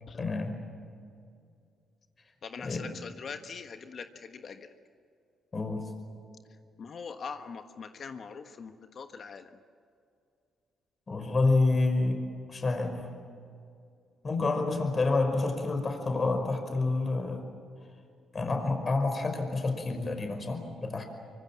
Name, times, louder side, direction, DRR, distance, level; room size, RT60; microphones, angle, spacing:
voice 1, 0.2-0.6 2.6-2.8 5.5-5.9 11.1-12.2 12.5-13.0 14.2-17.4 18.3-21.0, left 3 dB, 35° left, 5 dB, 5.3 m, -28 dB
voice 2, 2.4-4.7 6.8-9.5, left 5 dB, 55° left, 7 dB, 1.4 m, -42 dB
25.0 x 24.5 x 7.6 m, 2.4 s
cardioid pair, 80°, 0 cm